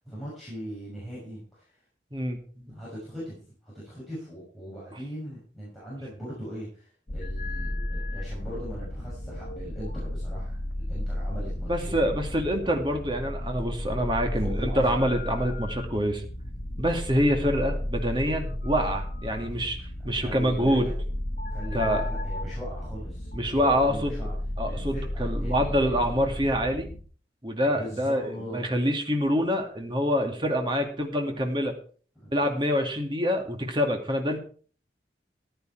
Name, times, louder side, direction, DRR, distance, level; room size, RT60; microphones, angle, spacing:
voice 1, 0.0-1.7 2.7-12.1 14.3-15.0 20.2-20.9 21.5-23.3 23.5-24.3 24.6-26.2 27.7-28.6 32.2-32.3, equal, ahead, -8 dB, 6.1 m, -40 dB
voice 2, 2.1-2.7 11.7-16.2 16.8-19.8 20.0-20.9 21.7-22.0 23.3-24.2 24.6-26.9 27.4-31.7 32.3-34.4, equal, 25° right, 3 dB, 2.2 m, -26 dB
sound 1, 7.1-27.0, left 1 dB, 55° left, 1.7 m, -33 dB
14.5 x 10.5 x 4.7 m, 0.43 s
head